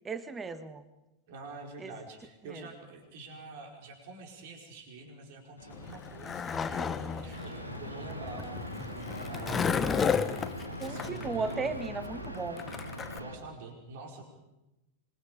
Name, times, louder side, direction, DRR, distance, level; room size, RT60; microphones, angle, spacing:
voice 1, 0.0-0.8 1.8-1.9 2.5-2.6 10.8-12.6, right 4 dB, 15° right, 12 dB, 1.5 m, -35 dB
voice 2, 1.3-8.9 9.3-9.9 10.6-11.7 13.1-14.2, right 3 dB, 50° right, 2 dB, 4.7 m, -46 dB
sound 1, 5.6-12.1, left 3 dB, 75° left, 2.0 m, -49 dB
Skateboard, 5.7-13.2, left 6 dB, 20° left, 1.1 m, -33 dB
sound 2, 7.3-13.4, equal, 90° right, 1.9 m, -41 dB
26.0 x 22.5 x 5.1 m, 0.95 s
figure-of-eight pair, 90°, 0 cm